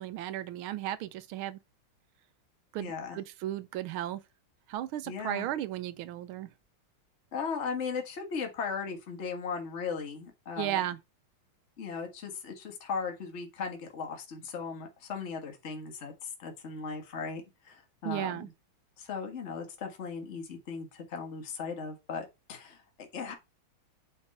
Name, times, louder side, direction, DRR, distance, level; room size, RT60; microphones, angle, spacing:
voice 1, 0.0-1.6 2.7-4.2 4.7-6.5 10.6-11.0 18.0-18.5, right 13 dB, 85° right, 1.5 m, -35 dB
voice 2, 2.8-3.2 5.1-5.5 7.3-10.8 11.8-18.5 19.0-23.3, left 5 dB, 35° left, 1.6 m, -37 dB
8.8 x 3.5 x 4.2 m
omnidirectional pair, 2.3 m